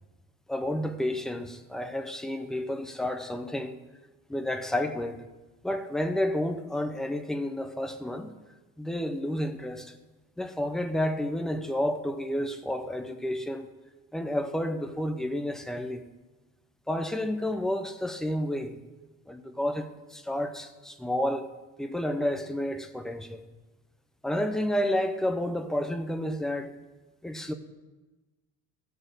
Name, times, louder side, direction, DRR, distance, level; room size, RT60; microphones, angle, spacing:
voice 1, 0.5-3.8 4.3-5.2 5.6-8.3 8.8-9.9 10.4-13.7 14.1-16.0 16.9-18.8 19.3-21.5 21.8-23.5 24.2-26.7 27.2-27.5, left 1 dB, ahead, 7 dB, 0.4 m, -30 dB
14.5 x 6.2 x 6.5 m, 1.2 s
cardioid pair, 170°, 36 cm